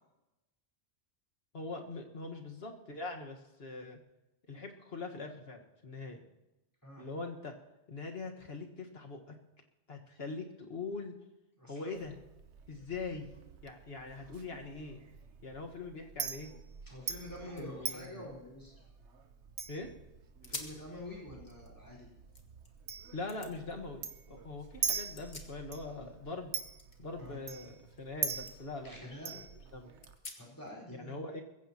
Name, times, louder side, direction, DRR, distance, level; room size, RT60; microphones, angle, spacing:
voice 1, 1.5-4.0 4.5-6.2 7.0-7.5 7.9-9.4 9.9-11.2 11.7-12.2 12.7-13.3 13.6-15.0 15.4-16.5 17.6-18.3 19.7-19.9 23.1-24.0 24.3-26.5 27.0-29.4 29.7-29.9 30.9-31.4, left 3 dB, 65° left, 2 dB, 1.8 m, -42 dB
voice 2, 11.6-12.0 16.9-18.8 20.4-22.1 27.2-27.4 28.8-29.3 30.4-31.2, left 1 dB, 15° left, -3 dB, 4.4 m, -47 dB
Chink clink, 12.0-30.2, right 6 dB, 85° right, 1.2 m, -43 dB
sound 1, 16.9-17.0 17.3-19.5 19.9-20.0 20.4-20.9 21.3-22.7 23.3-23.5 24.9-26.0 26.3-28.1 28.4-28.6 29.0-29.1 30.0-30.7, left 3 dB, 40° left, 1.6 m, -50 dB
22.5 x 15.0 x 2.9 m, 0.98 s
omnidirectional pair, 1.1 m